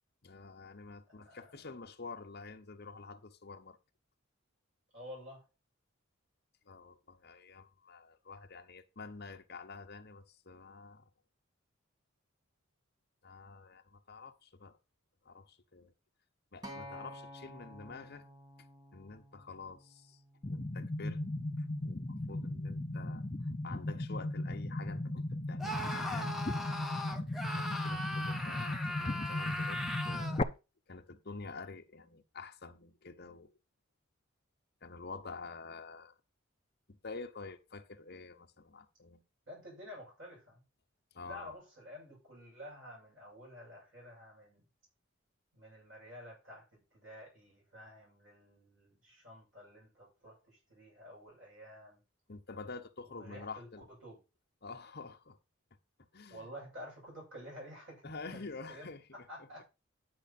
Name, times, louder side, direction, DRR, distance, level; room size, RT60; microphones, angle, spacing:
voice 1, 0.2-3.8 6.7-11.0 13.2-14.7 15.2-15.9 16.5-18.3 18.9-21.2 21.6-26.4 27.6-30.5 30.9-33.5 34.8-36.2 36.9-39.2 41.1-41.5 52.3-53.9 54.6-55.4 56.1-56.5 58.0-59.6, left 4 dB, 50° left, 1.1 m, -48 dB
voice 2, 1.1-1.4 4.9-5.4 39.5-40.6 41.2-44.7 45.5-52.0 53.1-54.2 56.3-58.9 59.1-59.6, equal, 65° right, 7.2 m, -51 dB
Acoustic guitar, 16.6-20.9 21.7-21.8, equal, 20° right, 1.7 m, -51 dB
sound 1, 20.4-30.4, left 1 dB, 30° left, 0.6 m, -37 dB
Screaming, 25.6-30.4, left 1 dB, ahead, 0.9 m, -39 dB
9.9 x 6.7 x 4.3 m
head